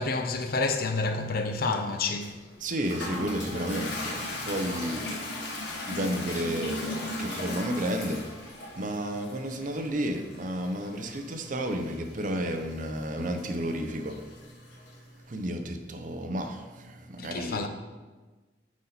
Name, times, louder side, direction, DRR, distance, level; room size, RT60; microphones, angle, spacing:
voice 1, 0.0-2.4 17.2-17.7, left 3 dB, 55° left, 0.6 m, -29 dB
Toilet flush, 2.2-15.0, left 1 dB, 70° left, 1.3 m, -38 dB
voice 2, 2.6-5.2 5.9-8.2 8.7-14.2 15.3-17.7, right 1 dB, 45° right, 0.7 m, -32 dB
9.3 x 4.2 x 4.1 m
head